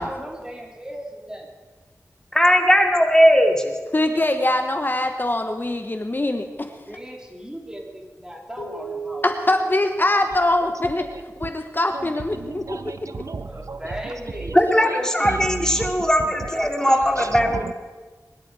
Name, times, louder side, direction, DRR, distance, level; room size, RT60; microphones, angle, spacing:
voice 1, 0.0-1.5 6.9-9.3 13.5-15.4 16.5-17.6, equal, 10° right, 1 dB, 3.3 m, -36 dB
voice 2, 2.3-3.7 14.5-17.6, equal, 10° left, 3 dB, 2.5 m, -18 dB
voice 3, 3.9-6.7 9.2-11.0 11.4-12.9, left 1 dB, 35° left, 6 dB, 1.2 m, -23 dB
sound 1, 8.6-11.1, right 4 dB, 75° left, 2.1 m, -37 dB
voice 4, 11.9-14.1 14.5-14.6 15.2-17.7, right 4 dB, 60° right, 10 dB, 0.7 m, -34 dB
22.0 x 11.5 x 4.8 m, 1.4 s
wide cardioid pair, 50°, 6 cm